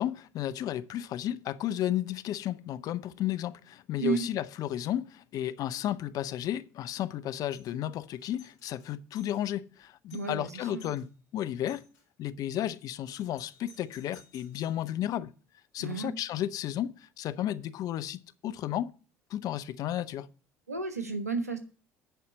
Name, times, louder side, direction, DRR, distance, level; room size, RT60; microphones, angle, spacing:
voice 1, 0.0-11.9 12.2-15.3 15.7-18.9 19.3-20.3, left 12 dB, 50° left, 0.5 m, -33 dB
Doorbell, 7.5-7.7 8.2-9.4 9.8-9.9 10.1-10.4 10.8-11.1 11.7-12.0 13.1-14.8, left 3 dB, 65° left, 3.2 m, -57 dB
voice 2, 10.1-10.8 15.8-16.1 20.7-21.6, right 4 dB, 85° right, 1.0 m, -32 dB
10.5 x 4.3 x 7.1 m
figure-of-eight pair, 55°, 8 cm